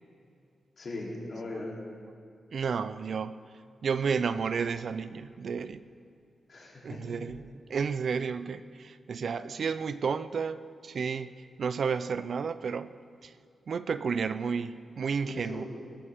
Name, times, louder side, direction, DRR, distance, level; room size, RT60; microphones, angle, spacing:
voice 1, 0.8-1.7 6.5-7.2 15.3-15.6, left 2 dB, 50° left, -4 dB, 3.2 m, -39 dB
voice 2, 2.5-3.3 3.8-5.8 6.8-7.4 7.7-10.6 10.8-11.3 11.6-12.9 13.2-13.3 13.7-15.6, right 6 dB, 60° right, 14 dB, 0.4 m, -31 dB
19.0 x 14.0 x 3.6 m, 2.3 s
wide cardioid pair, 130°, 0 cm